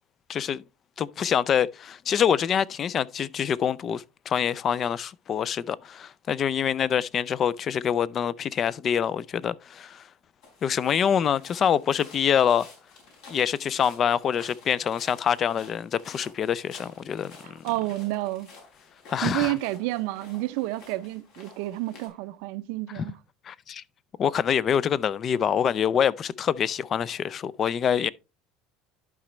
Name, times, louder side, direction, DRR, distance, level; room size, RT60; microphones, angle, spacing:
voice 1, 1.0-10.0 10.6-12.7 13.3-17.6 19.1-19.5 23.0-23.1 23.5-23.8 24.2-28.1, left 8 dB, 35° left, 0.4 m, -25 dB
sound 1, 10.4-22.1, left 4 dB, 70° left, 4.2 m, -51 dB
voice 2, 17.4-18.5 19.2-23.2, right 18 dB, 75° right, 0.6 m, -30 dB
11.5 x 5.0 x 3.1 m
cardioid pair, 135°, 0 cm